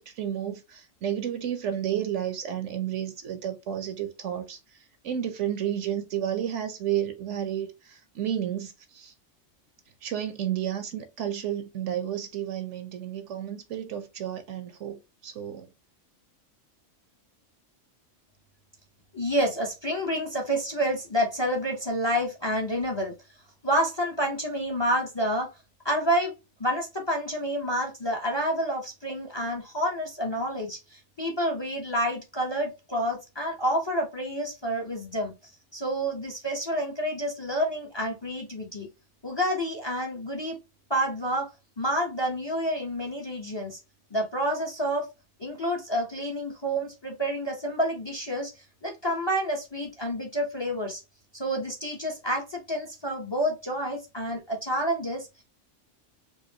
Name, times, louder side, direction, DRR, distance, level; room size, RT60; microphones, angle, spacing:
voice 1, 0.0-4.6 5.0-9.1 10.0-15.7, right 10 dB, 65° right, 1.0 m, -31 dB
voice 2, 19.1-23.1 23.6-25.5 25.8-26.3 26.6-35.3 35.7-38.9 39.2-40.6 40.9-41.5 41.8-43.8 44.1-45.1 45.4-48.5 48.8-51.0 51.3-55.3, equal, 25° left, 0.8 m, -29 dB
4.5 x 2.7 x 2.7 m
omnidirectional pair, 1.4 m